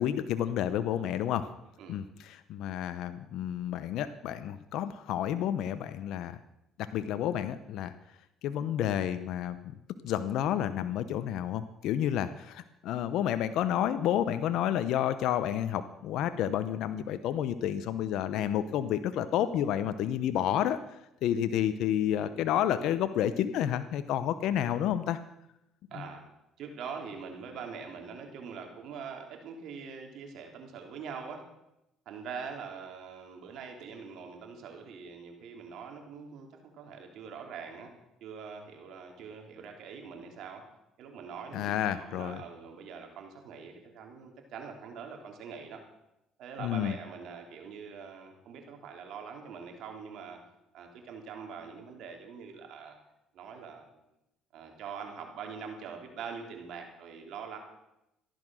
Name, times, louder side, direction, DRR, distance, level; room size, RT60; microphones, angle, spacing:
voice 1, 0.0-1.5 1.9-6.4 6.8-7.9 8.4-9.6 10.0-20.8 21.2-25.2 41.5-42.4 46.6-46.9, left 10 dB, 70° left, 12 dB, 0.8 m, -30 dB
voice 2, 25.9-26.2 26.6-31.4 32.0-37.9 38.2-40.6 41.0-45.8 46.4-50.4 50.7-52.9 53.3-54.0 54.5-57.6, right 6 dB, 65° right, 3 dB, 3.2 m, -43 dB
14.5 x 11.0 x 6.3 m, 0.88 s
supercardioid pair, 90°, 0 cm